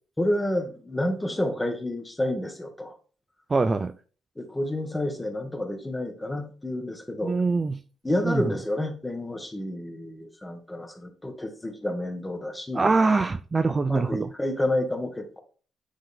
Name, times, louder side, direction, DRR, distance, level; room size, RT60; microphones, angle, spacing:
voice 1, 0.2-3.0 4.4-7.4 8.0-12.9 13.9-15.4, left 1 dB, 10° left, 5 dB, 1.6 m, -29 dB
voice 2, 3.5-3.9 7.2-7.8 8.3-8.4 12.7-14.3, right 3 dB, 30° right, 11 dB, 0.4 m, -23 dB
9.1 x 3.8 x 3.6 m, 0.39 s
cardioid pair, 90°, 0 cm